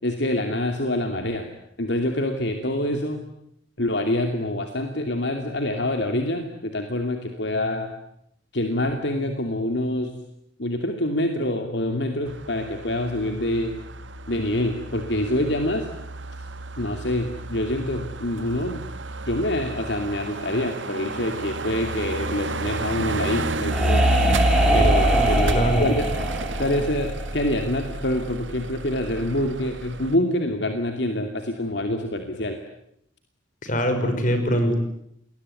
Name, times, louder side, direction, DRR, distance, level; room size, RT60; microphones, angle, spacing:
voice 1, 0.0-1.5 1.8-3.2 3.8-7.9 8.5-10.1 10.6-13.7 14.3-15.9 16.8-18.8 19.3-24.0 24.7-26.0 26.6-32.6, left 1 dB, 65° left, 5 dB, 2.7 m, -26 dB
sound 1, 12.3-30.2, right 1 dB, 75° right, 1.7 m, -29 dB
sound 2, 23.2-27.7, right 1 dB, ahead, 5.1 m, -24 dB
voice 2, 25.1-25.9 33.6-34.8, equal, 40° left, 8 dB, 5.8 m, -23 dB
29.0 x 21.5 x 9.7 m, 0.76 s
head